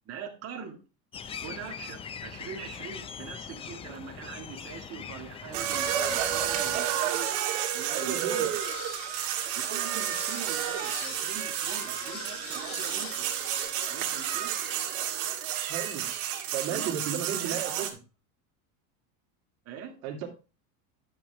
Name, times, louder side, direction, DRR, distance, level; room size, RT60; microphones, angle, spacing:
voice 1, 0.1-0.8 1.4-8.4 9.6-13.3 13.9-14.5 16.7-17.9 19.7-19.9, right 7 dB, 35° right, 1 dB, 1.9 m, -42 dB
sound 1, 1.1-6.8, left 7 dB, 15° left, 0.3 m, -42 dB
sound 2, 5.5-17.9, right 10 dB, 60° right, 1.9 m, -31 dB
voice 2, 7.9-8.5 15.7-16.1 16.5-17.9 20.0-20.3, right 9 dB, 80° right, 3 dB, 2.2 m, -34 dB
sound 3, 8.6-13.6, left 6 dB, 75° left, 3.1 m, -43 dB
10.0 x 6.8 x 3.4 m, 0.32 s
supercardioid pair, 125°, 42 cm